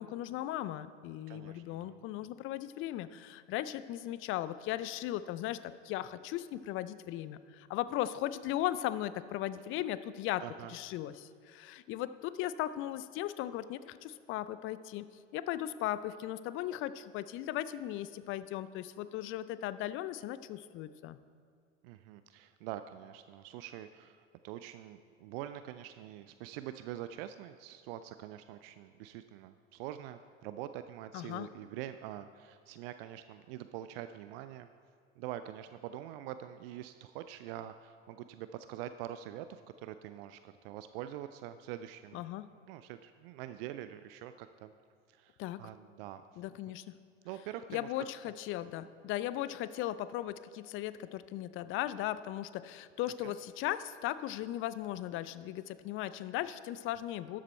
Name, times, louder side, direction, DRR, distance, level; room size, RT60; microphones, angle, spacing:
voice 1, 0.0-10.4 10.7-15.1 15.3-21.2 31.1-31.5 42.1-42.5 45.4-45.6 46.4-46.8 47.7-57.4, left 13 dB, 35° left, 15 dB, 0.4 m, -37 dB
voice 2, 1.3-2.0 10.4-10.7 21.8-34.7 35.2-42.2 42.7-44.7 45.1-46.2 46.7-46.8 47.2-47.9 53.2-53.3, right 12 dB, 50° right, 11 dB, 0.5 m, -45 dB
12.5 x 7.5 x 4.3 m, 2.3 s
figure-of-eight pair, 80°, 38 cm